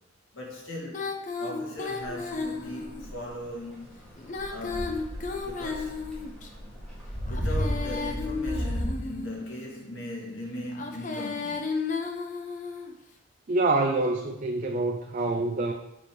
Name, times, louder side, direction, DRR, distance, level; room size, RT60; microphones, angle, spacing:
voice 1, 0.3-1.1 1.4-3.9 4.5-5.1 5.4-6.0 7.2-11.7 15.2-15.5, left 1 dB, 70° left, -3 dB, 2.2 m, -39 dB
Female singing, 0.9-3.1 4.2-6.5 7.3-9.4 10.7-12.9, left 4 dB, 40° left, 0.7 m, -34 dB
sound 1, 2.0-8.9, equal, 5° left, 1.8 m, -34 dB
voice 2, 13.5-15.7, right 2 dB, 40° right, 3 dB, 0.4 m, -26 dB
7.1 x 4.3 x 4.7 m, 0.91 s
head